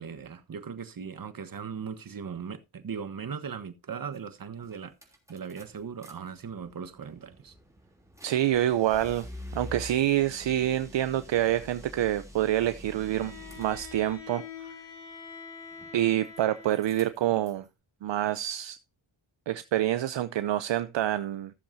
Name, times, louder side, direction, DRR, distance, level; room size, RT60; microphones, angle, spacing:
voice 1, 0.0-4.9 5.3-7.5, right 6 dB, 45° right, 1.3 m, -38 dB
sound 1, 4.1-4.2 4.6-6.1 6.5-14.2 15.7-16.4 16.7-17.7, left 1 dB, 5° right, 3.2 m, -47 dB
voice 2, 8.2-9.3 9.5-13.3 13.6-14.4 15.9-17.6 18.0-18.8 19.5-21.5, right 12 dB, 65° right, 0.7 m, -27 dB
Bowed string instrument, 12.8-17.1, left 5 dB, 60° left, 3.2 m, -45 dB
15.0 x 7.2 x 2.7 m
cardioid pair, 70°, 47 cm